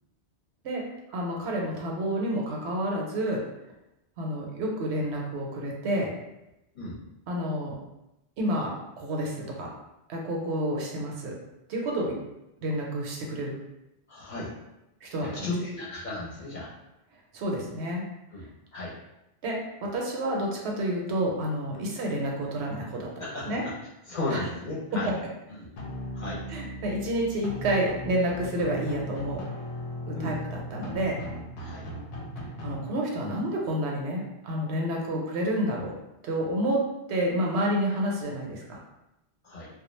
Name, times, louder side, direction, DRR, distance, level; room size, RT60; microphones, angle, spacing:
voice 1, 1.1-3.4 4.2-6.1 7.3-7.8 8.4-9.7 10.1-11.3 11.7-12.2 12.6-13.5 15.0-15.5 17.3-18.0 19.4-23.1 23.5-23.6 24.3-24.4 26.5-29.4 30.1-31.2 32.6-36.0 36.2-36.8 37.1-38.8, right 1 dB, 80° right, -1 dB, 0.9 m, -29 dB
voice 2, 14.1-14.5 15.2-16.7 18.3-18.5 18.7-18.9 21.7-21.9 23.2-23.6 24.1-25.1 25.5-25.7 26.1-26.4 30.1-30.4 31.6-31.9 35.1-35.3 39.4-39.7, left 2 dB, 45° left, -7 dB, 0.8 m, -35 dB
sound 1, 25.8-32.7, left 1 dB, 85° left, 0.9 m, -37 dB
2.3 x 2.1 x 3.0 m, 0.90 s
omnidirectional pair, 1.1 m